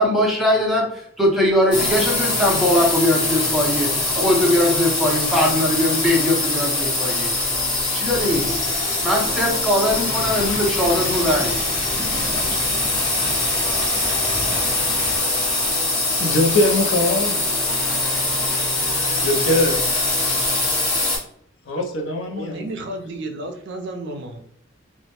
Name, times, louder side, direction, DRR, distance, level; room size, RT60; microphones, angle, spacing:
voice 1, 0.0-7.3 7.9-8.6 9.0-11.6, left 1 dB, ahead, -2 dB, 0.6 m, -20 dB
sound 1, 1.7-21.2, left 2 dB, 20° left, 1.0 m, -23 dB
Stream, 10.1-15.2, left 1 dB, 40° left, 1.3 m, -32 dB
voice 2, 14.5-14.9 22.3-24.4, right 2 dB, 60° right, 4 dB, 0.4 m, -33 dB
voice 3, 16.2-17.4 17.8-18.2 19.2-19.8 21.7-22.7, left 1 dB, 70° left, 1 dB, 0.5 m, -22 dB
2.2 x 2.0 x 2.8 m, 0.67 s
head